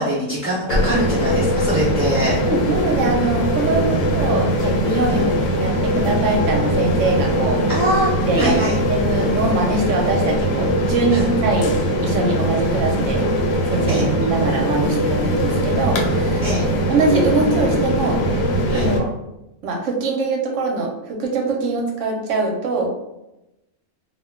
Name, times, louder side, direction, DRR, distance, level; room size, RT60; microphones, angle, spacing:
voice 1, 0.0-2.4 3.9-4.1 5.1-5.3 7.7-8.8 11.1-11.3 13.9-14.1 16.4-16.7 18.7-18.9, equal, 10° right, -11 dB, 0.8 m, -23 dB
sound 1, 0.7-19.0, equal, 75° left, 1.0 m, -21 dB
voice 2, 2.5-7.6 8.0-11.8 12.0-13.2 13.7-16.5 16.9-18.4 18.7-19.1 19.6-22.9, right 3 dB, 65° right, 1 dB, 0.9 m, -23 dB
2.4 x 2.2 x 3.5 m, 0.92 s
omnidirectional pair, 1.5 m